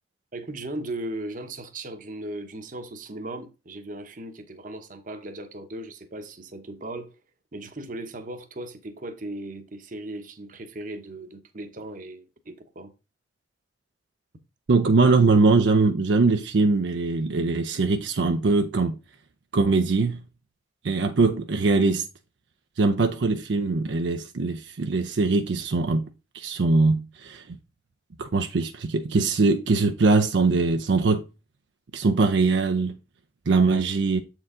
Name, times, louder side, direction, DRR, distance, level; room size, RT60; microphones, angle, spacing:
voice 1, 0.3-7.2 7.5-12.9, right 1 dB, 45° right, 0.9 m, -37 dB
voice 2, 14.7-19.0 19.5-20.2 20.8-22.1 22.8-26.1 26.3-27.4 28.2-31.2 31.9-33.0 33.5-34.2, right 3 dB, 75° right, 0.5 m, -22 dB
7.5 x 4.5 x 3.7 m
head